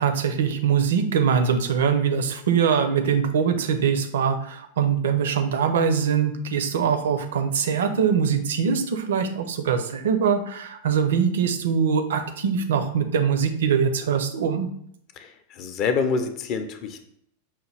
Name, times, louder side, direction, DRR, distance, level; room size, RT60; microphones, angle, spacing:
voice 1, 0.0-14.7, right 7 dB, 60° right, 8 dB, 0.5 m, -23 dB
voice 2, 15.2-17.0, left 5 dB, 40° left, 7 dB, 0.5 m, -27 dB
5.6 x 2.3 x 3.2 m, 0.68 s
figure-of-eight pair, 90°, 0 cm